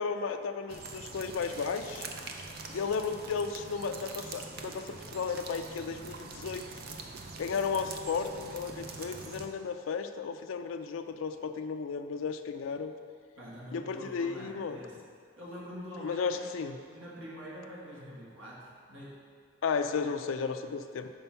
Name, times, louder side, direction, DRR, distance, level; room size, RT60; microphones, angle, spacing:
voice 1, 0.0-2.1 2.7-6.6 7.4-12.9 13.7-14.8 16.0-16.8 19.6-21.1, left 5 dB, 85° left, 7 dB, 0.4 m, -34 dB
sound 1, 0.7-9.5, right 3 dB, 50° right, 0.5 m, -44 dB
voice 2, 13.4-15.0 15.4-16.5 16.9-19.2 20.0-20.1, equal, 80° right, -6 dB, 1.7 m, -45 dB
5.5 x 4.5 x 5.6 m, 2.1 s
head